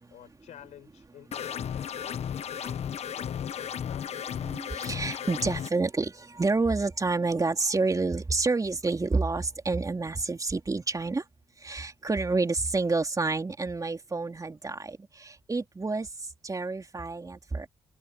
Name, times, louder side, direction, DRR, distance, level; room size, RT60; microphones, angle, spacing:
voice 1, 0.1-4.3, left 11 dB, 75° left, 4.8 m, -50 dB
sound 1, 1.3-5.7, left 8 dB, 60° left, 1.1 m, -34 dB
voice 2, 4.4-11.2 11.6-17.7, right 3 dB, 30° right, 3.4 m, -29 dB
supercardioid pair, 60°, 12 cm